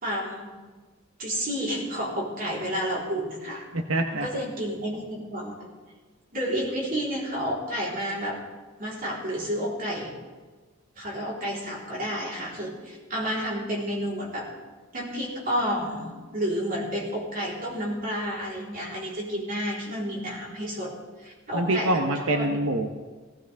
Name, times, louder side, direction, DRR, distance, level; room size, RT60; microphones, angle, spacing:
voice 1, 0.0-0.5 1.2-3.7 4.1-5.7 6.3-8.4 8.8-10.1 11.0-14.5 14.9-22.6, equal, 40° right, -4 dB, 3.9 m, -30 dB
voice 2, 3.7-4.3 21.5-22.9, right 1 dB, 85° right, 4 dB, 1.0 m, -25 dB
17.5 x 16.5 x 3.5 m, 1.4 s
head